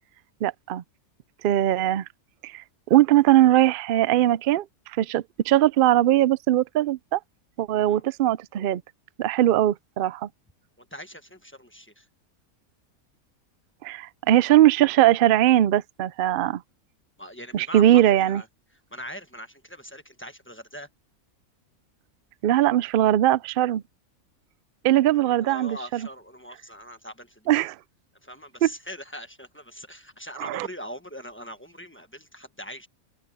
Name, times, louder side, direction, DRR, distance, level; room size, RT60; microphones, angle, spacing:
voice 1, 0.4-0.8 1.4-2.0 2.4-4.7 5.0-7.2 7.6-8.8 9.2-10.3 13.8-16.6 17.5-18.4 22.4-23.8 24.8-26.1 27.5-27.8 28.6-28.7 30.4-30.7, right 13 dB, 85° right, 0.4 m, -20 dB
voice 2, 10.8-12.1 17.2-18.5 18.9-20.9 25.1-27.6 28.2-32.9, equal, 10° left, 1.2 m, -41 dB
open air
omnidirectional pair, 1.5 m